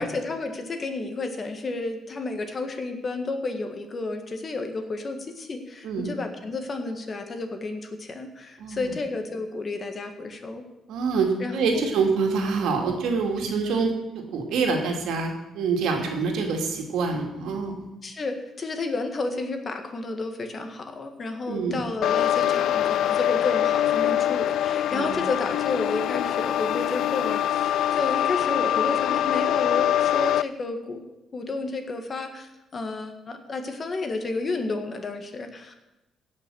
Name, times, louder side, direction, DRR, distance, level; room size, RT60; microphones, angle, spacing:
voice 1, 0.0-10.6 11.4-11.8 18.0-35.7, left 3 dB, 40° left, 6 dB, 1.7 m, -31 dB
voice 2, 8.6-8.9 10.9-17.9 21.5-21.8 24.9-25.2, right 4 dB, 85° right, 2 dB, 2.3 m, -26 dB
sound 1, 22.0-30.4, left 11 dB, 75° left, 0.3 m, -24 dB
17.0 x 5.9 x 6.3 m, 0.98 s
cardioid pair, 90°, 0 cm